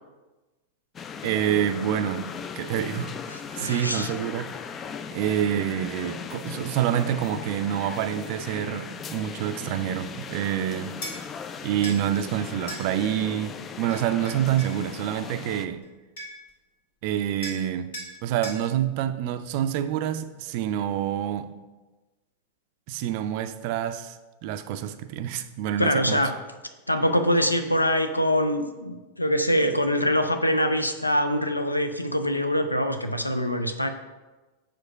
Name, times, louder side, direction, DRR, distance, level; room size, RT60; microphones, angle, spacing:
sound 1, 0.9-15.7, left 6 dB, 25° left, 0.4 m, -38 dB
voice 1, 1.2-2.3 2.6-3.1 3.5-4.5 5.1-11.0 11.6-15.8 17.0-17.9 18.2-21.5 22.9-24.2 24.4-26.2, right 10 dB, 45° right, 10 dB, 0.4 m, -27 dB
voice 2, 3.3-4.1 25.8-26.3 26.9-33.9, equal, 85° left, 7 dB, 0.5 m, -24 dB
sound 2, 11.0-11.2 11.8-12.0 12.7-12.9 13.9-14.8 15.8-15.9 16.2-16.5 17.4-17.7 17.9-18.1 18.4-18.6, equal, 60° left, 1.6 m, -37 dB
4.9 x 4.5 x 5.5 m, 1.2 s
figure-of-eight pair, 90°, 0 cm